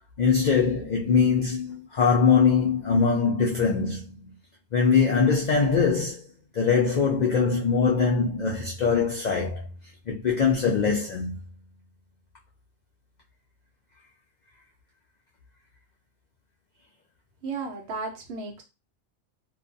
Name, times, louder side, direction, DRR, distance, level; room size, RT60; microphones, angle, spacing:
voice 1, 0.2-4.3 4.7-6.3 6.5-9.6 10.1-11.4, left 5 dB, 90° left, 0.4 m, -22 dB
voice 2, 17.4-18.6, right 4 dB, 65° right, 0.9 m, -34 dB
2.5 x 2.3 x 2.5 m
omnidirectional pair, 1.3 m